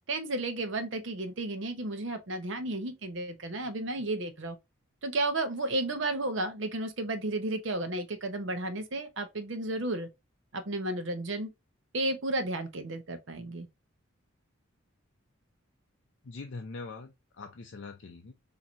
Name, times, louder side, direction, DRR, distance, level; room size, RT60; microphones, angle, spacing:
voice 1, 0.1-4.6 5.0-10.1 10.5-11.5 11.9-13.7, right 2 dB, 60° right, 0.8 m, -33 dB
voice 2, 16.2-18.3, left 3 dB, 60° left, 0.5 m, -43 dB
4.4 x 2.8 x 2.4 m
head